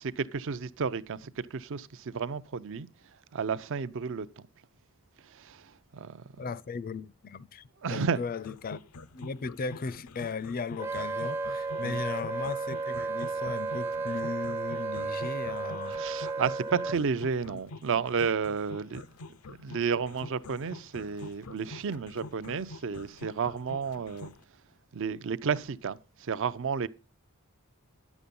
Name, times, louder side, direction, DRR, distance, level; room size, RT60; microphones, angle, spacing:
voice 1, 0.0-2.9 3.3-4.3 5.2-6.2 7.8-8.2 11.8-12.0 15.9-19.0 19.5-24.3 24.9-26.9, right 6 dB, 60° right, 0.5 m, -32 dB
voice 2, 6.4-8.8 9.1-16.0 17.5-17.6, left 4 dB, 40° left, 0.5 m, -37 dB
sound 1, 8.4-24.4, left 2 dB, 90° left, 0.6 m, -46 dB
Wind instrument woodwind instrument, 10.8-17.0, right 3 dB, 10° right, 0.5 m, -33 dB
10.0 x 7.2 x 5.3 m
head